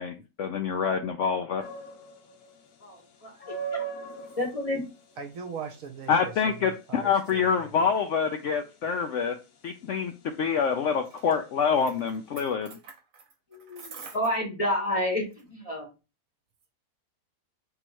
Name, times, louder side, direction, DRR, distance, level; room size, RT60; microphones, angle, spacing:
voice 1, 0.0-1.6 6.1-9.3 9.6-10.1 10.4-12.7, left 6 dB, 90° left, 0.6 m, -26 dB
sound 1, 1.6-12.3, right 6 dB, 60° left, 1.1 m, -42 dB
voice 2, 2.8-3.3 4.4-4.8 13.5-15.9, left 1 dB, 25° left, 0.8 m, -30 dB
voice 3, 5.2-7.8 12.4-12.5 12.8-13.2 13.7-14.2, right 6 dB, 60° right, 1.0 m, -41 dB
3.7 x 3.0 x 4.3 m
omnidirectional pair, 1.8 m